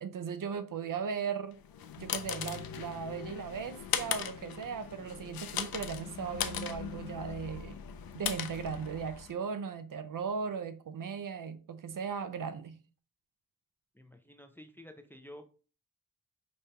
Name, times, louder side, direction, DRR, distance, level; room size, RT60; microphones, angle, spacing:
voice 1, 0.0-1.6 2.0-7.8 8.1-12.8, right 6 dB, 65° right, 0.5 m, -37 dB
sound 1, 1.6-9.3, left 9 dB, 85° left, 0.5 m, -38 dB
voice 2, 13.9-15.5, left 1 dB, 5° left, 0.5 m, -51 dB
5.2 x 2.8 x 3.3 m
wide cardioid pair, 105°, 35 cm